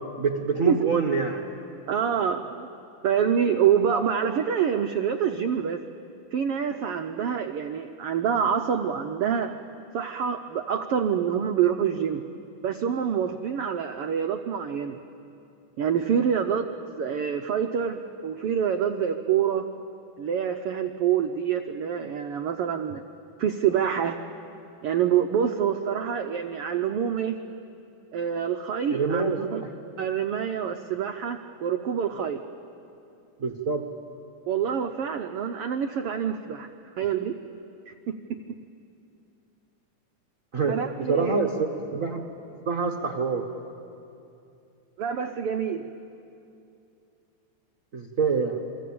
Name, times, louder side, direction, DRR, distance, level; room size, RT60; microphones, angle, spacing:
voice 1, 0.2-1.4 28.9-29.7 33.4-33.8 40.5-40.8 41.1-41.5 41.9-42.2 42.6-43.5 47.9-48.6, right 4 dB, 70° right, 3 dB, 0.7 m, -25 dB
voice 2, 1.9-2.7 3.0-5.8 6.3-9.5 9.9-12.2 12.6-15.0 15.8-16.7 16.9-19.7 20.2-23.0 23.4-24.2 24.8-27.4 28.1-29.6 30.0-32.4 34.5-36.7 37.0-37.3 37.9-38.0 40.6-41.4 45.0-45.9, right 8 dB, 85° right, 6 dB, 1.2 m, -26 dB
28.0 x 24.0 x 8.6 m, 2.7 s
omnidirectional pair, 3.7 m